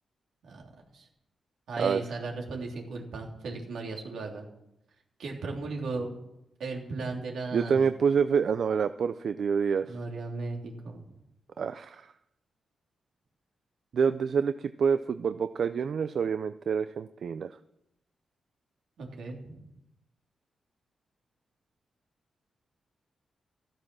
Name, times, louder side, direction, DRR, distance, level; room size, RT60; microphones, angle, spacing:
voice 1, 0.4-1.1 1.7-4.4 5.2-6.1 6.6-7.9 9.9-11.0 19.0-19.6, right 3 dB, 85° right, 0 dB, 3.4 m, -36 dB
voice 2, 7.5-10.0 11.6-12.0 13.9-17.5, right 6 dB, 65° right, 11 dB, 0.5 m, -27 dB
14.0 x 13.0 x 6.3 m, 0.84 s
wide cardioid pair, 120°, 0 cm